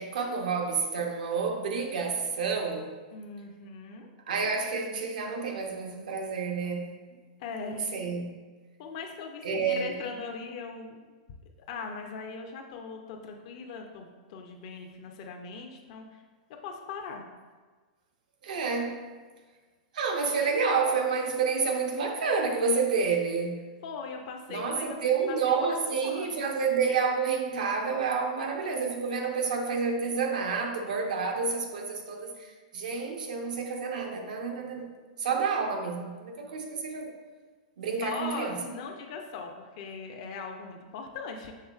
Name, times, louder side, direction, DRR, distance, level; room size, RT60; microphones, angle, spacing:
voice 1, 0.0-3.0 4.3-6.9 7.6-8.3 9.4-10.0 18.4-19.1 19.9-23.6 24.5-34.9 35.2-37.1 37.8-38.6, right 5 dB, 85° right, 2 dB, 0.7 m, -29 dB
voice 2, 3.1-4.1 7.4-7.9 8.8-11.0 11.7-16.2 16.6-17.2 23.8-25.0 25.3-25.4 25.9-26.4 38.0-41.5, left 5 dB, 50° left, 2 dB, 0.5 m, -40 dB
5.5 x 3.6 x 2.4 m, 1.4 s
supercardioid pair, 155°, 4 cm